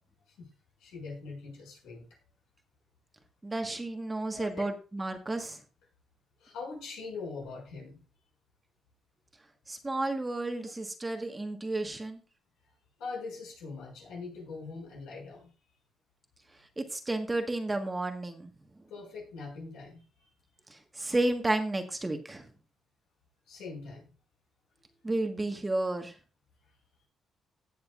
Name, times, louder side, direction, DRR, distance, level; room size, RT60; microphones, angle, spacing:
voice 1, 0.8-2.1 4.3-4.6 6.4-8.0 10.4-10.5 13.0-15.5 18.9-20.3 23.5-24.1, left 4 dB, 85° left, -2 dB, 6.0 m, -42 dB
voice 2, 3.4-5.6 9.7-12.2 16.8-18.5 20.7-22.5 25.0-26.1, right 2 dB, 20° right, 6 dB, 1.4 m, -32 dB
18.0 x 6.6 x 2.5 m, 0.34 s
cardioid pair, 90°, 0 cm